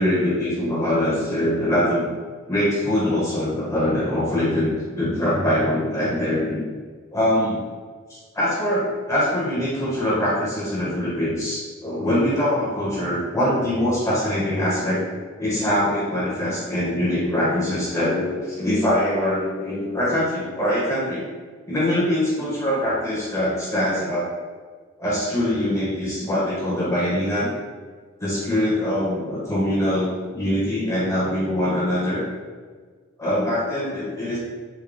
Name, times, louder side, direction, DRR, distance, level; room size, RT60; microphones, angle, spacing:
voice 1, 0.0-2.1 2.5-6.6 7.1-7.6 8.3-15.0 15.4-21.2 21.7-24.3 25.0-27.5 28.2-32.2 33.2-34.4, left 1 dB, 15° left, -8 dB, 0.9 m, -23 dB
3.7 x 2.2 x 3.3 m, 1.5 s
head